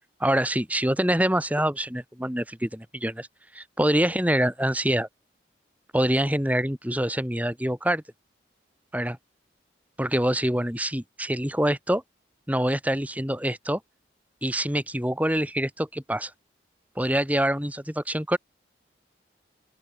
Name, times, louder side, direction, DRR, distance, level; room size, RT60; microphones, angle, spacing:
voice 1, 0.2-3.3 3.5-5.1 5.9-8.0 8.9-9.2 10.0-12.0 12.5-13.8 14.4-16.3 17.0-18.4, right 1 dB, 10° right, 5.7 m, -25 dB
open air
head